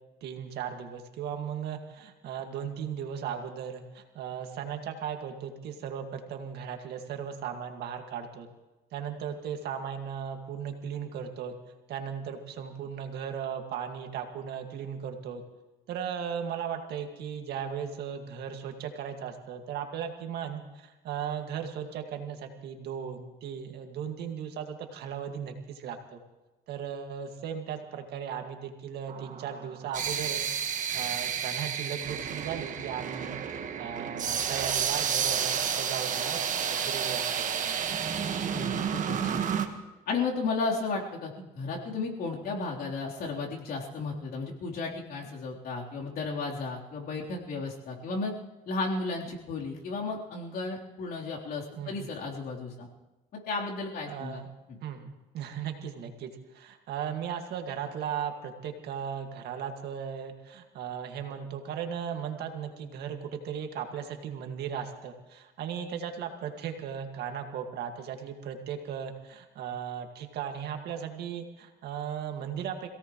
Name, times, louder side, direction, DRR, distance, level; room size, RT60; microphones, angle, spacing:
voice 1, 0.2-8.5 8.9-11.5 11.9-15.4 15.9-26.2 26.7-30.4 30.7-37.8 51.8-52.0 54.1-54.5 54.8-72.9, right 8 dB, 75° right, 4 dB, 2.0 m, -37 dB
sound 1, 29.1-39.7, right 8 dB, 50° right, 1.5 m, -31 dB
voice 2, 38.5-39.4 40.1-48.3 48.7-52.9 53.3-54.8, left 3 dB, 65° left, -3 dB, 3.7 m, -34 dB
26.5 x 17.0 x 3.2 m, 1.1 s
cardioid pair, 110°, 17 cm